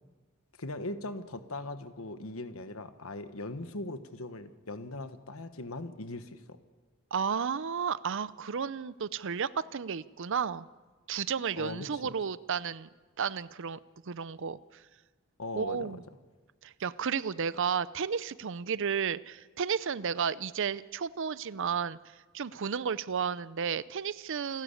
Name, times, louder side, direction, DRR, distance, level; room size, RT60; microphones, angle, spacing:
voice 1, 0.6-6.6 11.6-12.1 15.4-16.0, left 2 dB, 75° left, 10 dB, 1.4 m, -40 dB
voice 2, 7.1-10.7 11.1-12.9 13.2-13.8 14.1-14.6 15.5-16.0 16.6-22.0 22.3-24.6, right 6 dB, 60° right, 17 dB, 0.6 m, -32 dB
28.5 x 12.0 x 8.5 m, 1.4 s
head